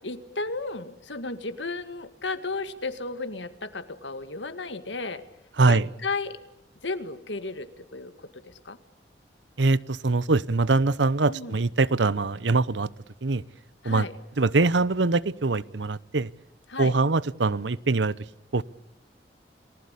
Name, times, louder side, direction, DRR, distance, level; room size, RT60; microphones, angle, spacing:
voice 1, 0.0-5.2 5.7-6.4 6.8-8.8 11.3-11.6 13.8-14.1 16.7-16.9, left 3 dB, 85° left, 10 dB, 2.1 m, -34 dB
voice 2, 5.6-5.9 9.6-12.9 13.2-13.4 13.8-14.1 14.4-16.3 16.8-18.2 18.5-18.6, right 3 dB, 85° right, 19 dB, 0.8 m, -23 dB
30.0 x 19.5 x 8.4 m, 0.92 s
head